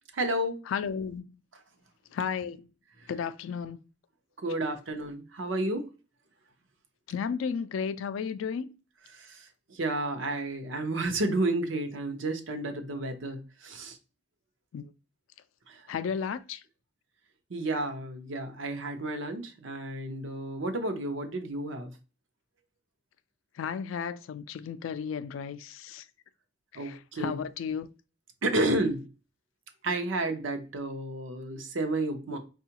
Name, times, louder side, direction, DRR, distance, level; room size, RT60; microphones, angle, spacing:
voice 1, 0.1-0.6 4.4-5.9 9.1-9.4 9.7-14.0 15.7-15.8 17.5-21.9 26.7-27.4 28.4-29.1 29.8-32.4, right 2 dB, 75° right, 0.7 m, -31 dB
voice 2, 0.7-1.4 2.1-2.7 3.1-3.8 7.1-8.7 14.7-14.8 15.9-16.6 23.6-26.0 26.7-27.9, left 6 dB, 85° left, 0.3 m, -33 dB
4.5 x 2.3 x 2.8 m
head